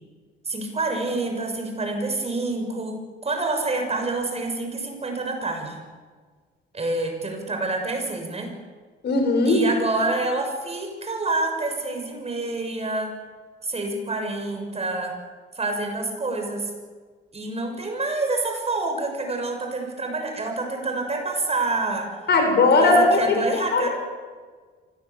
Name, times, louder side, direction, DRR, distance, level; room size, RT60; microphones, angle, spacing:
voice 1, 0.5-5.8 6.7-8.5 9.4-13.1 13.6-15.1 15.5-16.7 17.3-22.3 22.7-23.9, right 2 dB, 30° right, 4 dB, 6.4 m, -27 dB
voice 2, 9.0-9.6 22.3-23.2 23.5-23.9, left 3 dB, 55° left, 3 dB, 7.3 m, -18 dB
24.5 x 18.5 x 8.4 m, 1.5 s
cardioid pair, 90°, 20 cm